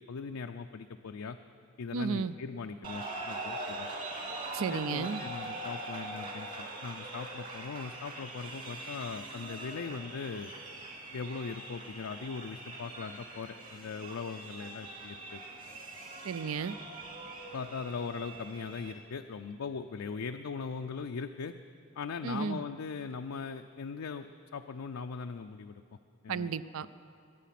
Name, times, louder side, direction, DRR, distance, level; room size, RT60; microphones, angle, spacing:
voice 1, 0.0-1.4 1.8-3.9 4.7-10.5 11.1-15.4 17.5-21.5 22.0-24.3 24.5-25.8 26.2-26.5, left 5 dB, 80° left, 6 dB, 0.5 m, -40 dB
voice 2, 1.9-2.3 4.5-5.2 16.2-16.8 22.2-22.6 26.3-26.9, right 5 dB, 75° right, 16 dB, 0.4 m, -33 dB
sound 1, 2.8-18.9, right 2 dB, 40° right, 2.3 m, -42 dB
22.5 x 9.2 x 5.9 m, 2.5 s
head